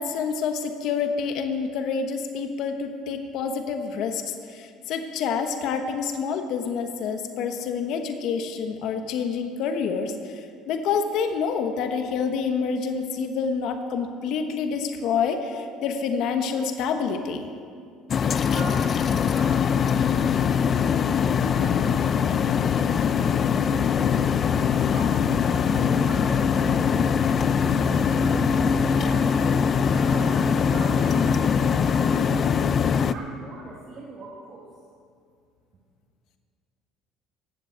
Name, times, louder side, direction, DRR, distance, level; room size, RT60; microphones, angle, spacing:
voice 1, 0.0-17.5, left 6 dB, 65° left, 6 dB, 1.2 m, -27 dB
sound 1, 18.1-33.1, left 6 dB, 40° left, 0.5 m, -22 dB
voice 2, 18.5-22.5 22.8-24.0 24.7-27.2 27.5-29.3 29.9-32.6 33.1-34.7, right 3 dB, 45° right, -5 dB, 2.4 m, -41 dB
15.5 x 7.6 x 9.3 m, 2.3 s
cardioid pair, 105°, 0 cm